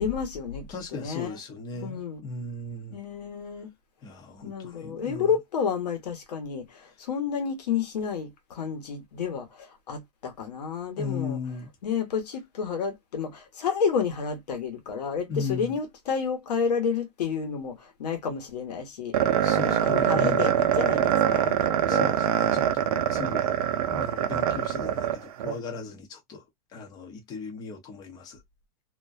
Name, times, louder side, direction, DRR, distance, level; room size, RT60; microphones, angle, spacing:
voice 1, 0.0-0.7 0.9-1.3 1.7-2.2 2.9-3.7 4.4-11.4 11.8-19.2 19.5-22.1, left 6 dB, 85° left, 1.1 m, -30 dB
voice 2, 0.7-3.0 4.0-5.3 11.0-11.7 15.3-15.7 19.4-20.4 21.9-23.6 23.9-26.4 26.7-28.4, left 4 dB, 20° left, 0.7 m, -37 dB
sound 1, 19.1-25.6, right 10 dB, 65° right, 0.6 m, -24 dB
2.5 x 2.2 x 2.3 m
supercardioid pair, 160°, 20 cm